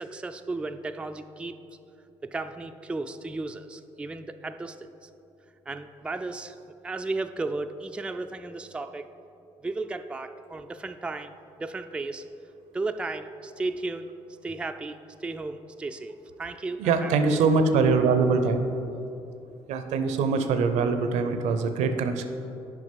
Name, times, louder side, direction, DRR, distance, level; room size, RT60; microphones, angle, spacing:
voice 1, 0.0-1.6 2.2-5.1 5.7-6.6 6.8-9.1 9.6-12.3 12.7-14.1 14.4-17.5, right 3 dB, 10° right, 8 dB, 0.3 m, -34 dB
voice 2, 16.8-18.7 19.7-22.3, right 4 dB, 70° right, 8 dB, 0.6 m, -23 dB
6.7 x 5.1 x 5.2 m, 2.8 s
hypercardioid pair, 60°, 12 cm